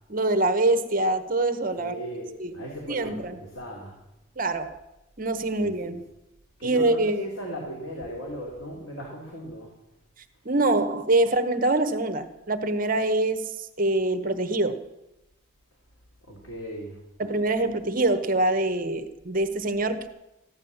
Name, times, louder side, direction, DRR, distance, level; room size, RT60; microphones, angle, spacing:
voice 1, 0.1-1.9 2.4-2.6 2.9-3.4 4.4-4.8 5.2-6.0 6.6-7.2 10.4-14.8 17.2-20.1, right 2 dB, 40° right, 10 dB, 0.9 m, -24 dB
voice 2, 1.8-4.0 5.6-6.0 6.6-9.7 16.3-17.0, equal, 80° left, -2 dB, 3.3 m, -37 dB
15.0 x 11.5 x 7.1 m, 0.95 s
head